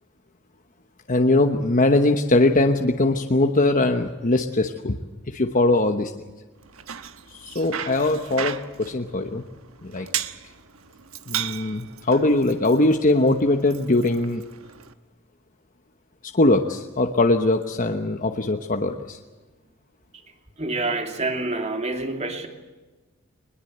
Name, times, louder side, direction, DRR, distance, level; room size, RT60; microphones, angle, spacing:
voice 1, 1.1-5.0 5.3-6.1 7.3-9.4 9.8-10.1 11.3-14.4 16.3-19.2, left 2 dB, 40° left, 4 dB, 1.1 m, -21 dB
Bicycle, 6.6-14.9, right 9 dB, 90° right, 1.2 m, -36 dB
voice 2, 20.6-22.5, right 2 dB, 30° right, 4 dB, 2.7 m, -27 dB
22.0 x 21.5 x 8.0 m, 1.2 s
head